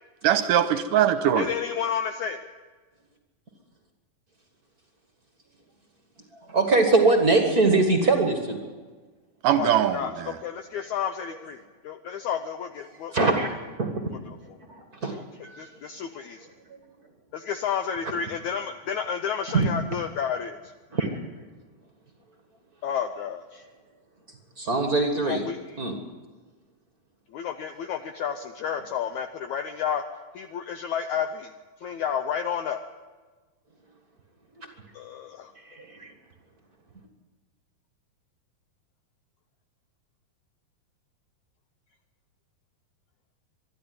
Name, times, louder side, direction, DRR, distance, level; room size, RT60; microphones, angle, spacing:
voice 1, 0.2-1.5 9.4-10.4, right 10 dB, 75° right, 11 dB, 2.2 m, -22 dB
voice 2, 1.3-2.4 9.5-11.6 11.8-13.5 15.1-15.2 15.6-16.5 17.3-20.6 22.8-23.6 25.2-25.8 27.3-30.0 30.3-31.5 31.8-32.8 34.9-35.5, left 8 dB, 80° left, 8 dB, 1.7 m, -31 dB
voice 3, 6.5-8.6 13.1-13.5 13.8-14.0 14.7-15.1 15.4-15.7 19.5-19.7 20.9-21.1 24.6-25.5 25.8-26.0 31.8-31.9 34.6-34.7 35.7-36.1, right 3 dB, 40° right, 4 dB, 1.3 m, -22 dB
24.0 x 12.0 x 9.4 m, 1.4 s
omnidirectional pair, 4.2 m